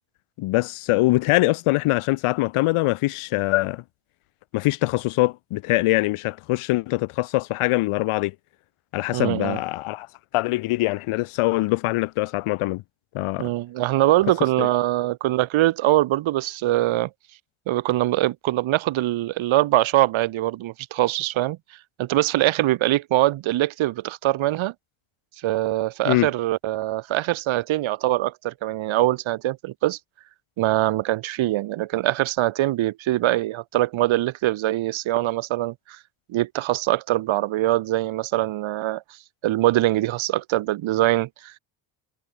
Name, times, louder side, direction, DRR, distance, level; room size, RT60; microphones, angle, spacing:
voice 1, 0.4-3.8 4.5-8.3 8.9-10.1 10.3-12.8 13.1-13.5 14.6-14.7 26.0-26.3, left 19 dB, 85° left, 6.3 m, -23 dB
voice 2, 9.1-9.6 13.4-17.1 17.7-21.6 22.0-24.7 25.4-30.0 30.6-36.0 36.3-39.0 39.4-41.6, right 15 dB, 70° right, 6.4 m, -23 dB
cardioid pair, 145°, 49 cm